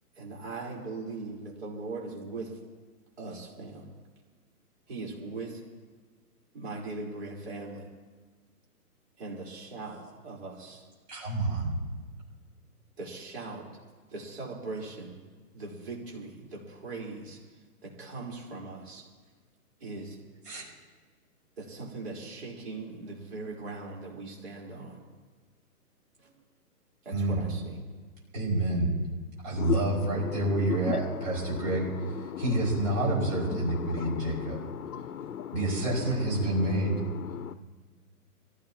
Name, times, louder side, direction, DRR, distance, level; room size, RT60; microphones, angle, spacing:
voice 1, 0.1-2.6 3.2-3.9 4.9-5.6 6.5-7.9 9.2-10.9 11.5-11.6 13.0-13.7 14.1-15.2 15.5-17.4 17.8-19.0 19.8-20.2 21.6-25.0 27.0-27.8, right 3 dB, 40° right, -2 dB, 4.5 m, -40 dB
voice 2, 11.1-11.7 20.5-20.7 27.1-27.4 28.3-28.9 29.4-31.9 32.4-34.6 35.5-36.9, right 2 dB, 25° right, -6 dB, 6.1 m, -28 dB
voice 3, 29.6-37.5, left 9 dB, 70° left, 12 dB, 0.7 m, -37 dB
25.0 x 16.0 x 3.0 m, 1.5 s
hypercardioid pair, 170°, 46 cm